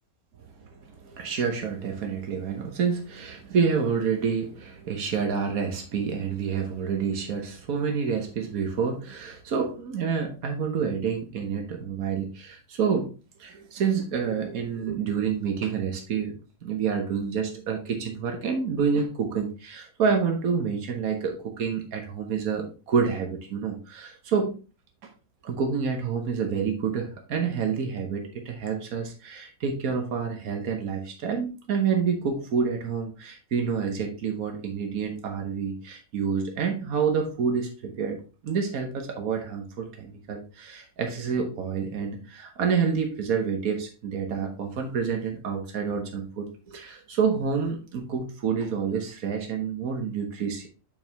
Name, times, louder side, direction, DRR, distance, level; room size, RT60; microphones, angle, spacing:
voice 1, 0.8-13.1 13.4-16.3 16.6-24.5 25.4-50.7, right 6 dB, 85° right, 3 dB, 1.5 m, -28 dB
8.2 x 4.5 x 3.4 m, 0.33 s
omnidirectional pair, 1.5 m